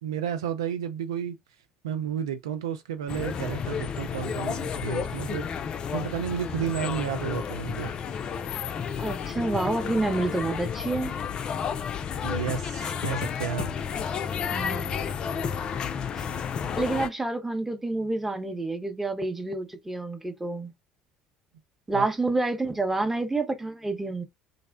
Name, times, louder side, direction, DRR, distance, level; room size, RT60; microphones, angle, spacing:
voice 1, 0.0-1.4 1.8-5.5 5.9-7.9 12.2-13.7 21.9-22.1, right 9 dB, 75° right, 0.3 m, -32 dB
sound 1, 3.1-17.1, left 7 dB, 40° left, 0.3 m, -31 dB
voice 2, 9.0-11.1 14.5-15.1 16.8-20.7 21.9-24.2, right 2 dB, 10° right, 0.7 m, -28 dB
2.5 x 2.0 x 2.3 m
figure-of-eight pair, 60°, 2 cm